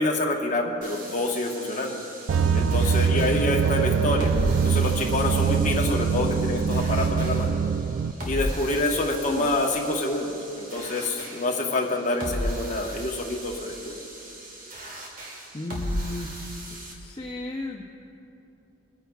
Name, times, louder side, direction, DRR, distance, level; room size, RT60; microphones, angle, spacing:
voice 1, 0.0-2.0 2.5-4.3 4.6-7.5 8.2-13.9, left 2 dB, 45° left, 0 dB, 1.1 m, -27 dB
sound 1, 0.8-16.9, equal, 45° right, 1.6 m, -36 dB
sound 2, 2.3-8.1, right 6 dB, 90° right, 0.3 m, -23 dB
voice 2, 3.1-3.5 9.3-9.6 15.5-16.3 16.9-17.8, left 1 dB, 25° left, -1 dB, 0.5 m, -34 dB
25.5 x 9.4 x 2.3 m, 2.7 s
head